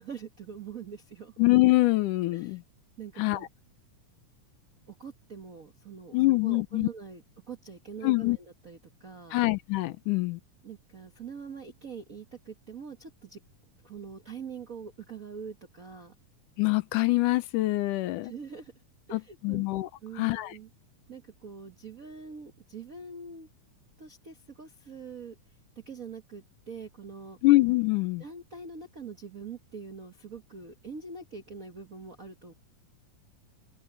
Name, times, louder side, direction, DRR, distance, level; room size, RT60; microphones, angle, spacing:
voice 1, 0.0-1.4 2.3-2.6 3.0-3.5 4.9-9.4 10.6-13.4 13.8-16.1 18.2-18.7 19.1-19.6 20.0-20.7 21.1-23.5 24.0-25.3 25.7-27.4 28.2-32.5, right 5 dB, 50° right, 0.9 m, -44 dB
voice 2, 1.4-2.6 3.2-3.4 6.1-6.9 8.0-8.4 9.3-10.4 16.6-18.3 19.1-19.9 20.2-20.5 27.4-28.2, left 20 dB, 85° left, 2.3 m, -24 dB
open air
omnidirectional pair, 3.6 m